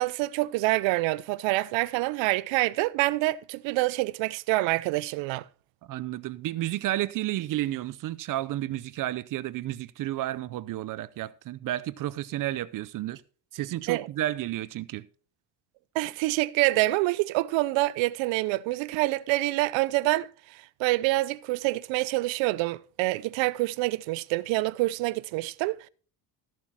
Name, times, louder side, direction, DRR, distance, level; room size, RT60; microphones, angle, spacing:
voice 1, 0.0-5.4 13.9-14.1 15.9-25.9, right 20 dB, 90° right, 0.6 m, -26 dB
voice 2, 5.8-13.2 13.5-15.1, right 14 dB, 45° right, 0.6 m, -31 dB
14.0 x 7.4 x 4.2 m
cardioid pair, 145°, 44 cm